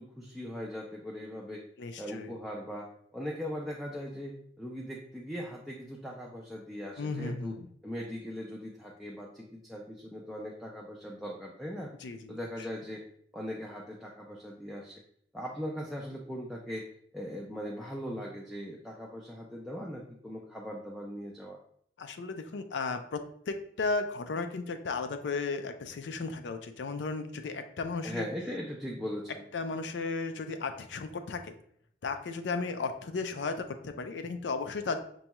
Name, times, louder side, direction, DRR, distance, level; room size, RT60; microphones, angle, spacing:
voice 1, 0.0-1.6 2.0-7.6 7.8-11.9 12.3-13.0 13.3-15.0 15.3-16.9 17.1-21.6 28.0-29.5, equal, ahead, -3 dB, 0.3 m, -40 dB
voice 2, 1.8-2.3 7.0-7.7 12.0-12.4 22.0-23.2 23.5-28.3 29.5-31.5 32.0-35.0, left 4 dB, 85° left, 8 dB, 0.4 m, -35 dB
5.2 x 2.3 x 2.9 m, 0.65 s
head